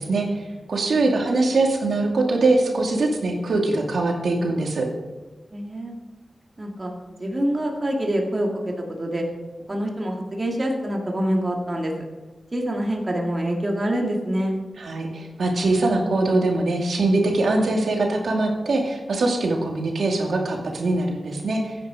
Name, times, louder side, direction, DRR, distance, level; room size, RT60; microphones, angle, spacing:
voice 1, 0.0-4.8 14.8-21.8, right 2 dB, 85° right, 1 dB, 2.5 m, -22 dB
voice 2, 5.5-5.9 6.6-6.9 7.2-9.2 9.7-11.9 12.5-14.5, right 1 dB, 30° right, 0 dB, 2.2 m, -26 dB
15.0 x 9.5 x 5.0 m, 1.2 s
wide cardioid pair, 125°, 0 cm